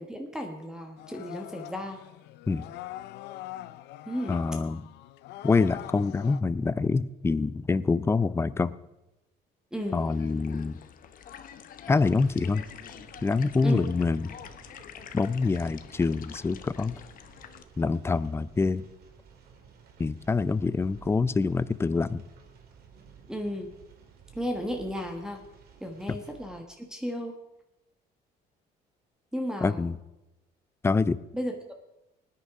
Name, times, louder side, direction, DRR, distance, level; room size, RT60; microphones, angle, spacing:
voice 1, 0.0-2.0 4.0-4.4 9.7-10.0 13.6-13.8 23.3-23.7 24.3-25.4 25.8-27.4 29.3-29.9 31.3-31.7, equal, 5° right, 3 dB, 1.3 m, -34 dB
sound 1, 1.0-6.4, left 14 dB, 80° left, 0.5 m, -43 dB
voice 2, 4.3-4.8 5.4-8.7 9.9-10.8 11.9-12.6 13.2-14.3 15.1-17.0 17.8-18.8 20.0-22.2 26.1-26.2 29.6-29.9 30.8-31.2, left 4 dB, 15° left, 17 dB, 0.4 m, -26 dB
sound 2, 9.8-17.6, left 9 dB, 55° left, 0.9 m, -47 dB
sound 3, 11.9-26.6, right 6 dB, 65° right, 2.1 m, -54 dB
20.0 x 9.7 x 3.7 m, 0.96 s
cardioid pair, 110°, 17 cm